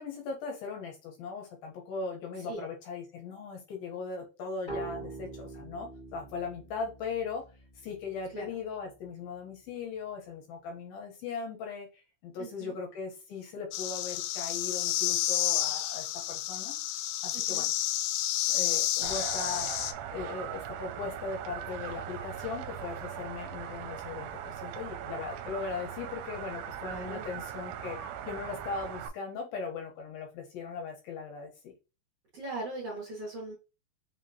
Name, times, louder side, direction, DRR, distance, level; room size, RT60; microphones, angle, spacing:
voice 1, 0.0-7.4 7.8-16.8 17.2-17.7 18.5-19.7 20.1-31.7, left 5 dB, 70° left, 2 dB, 2.6 m, -39 dB
sound 1, 4.7-8.1, right 3 dB, 20° left, 1.4 m, -43 dB
voice 2, 12.4-12.8 17.3-17.7 26.9-27.3 32.3-33.5, right 2 dB, 50° right, -3 dB, 2.0 m, -40 dB
sound 2, 13.7-19.9, left 13 dB, 90° left, 2.6 m, -30 dB
sound 3, 19.0-29.1, right 9 dB, 85° right, 2.6 m, -40 dB
5.9 x 2.9 x 2.8 m, 0.29 s
omnidirectional pair, 4.7 m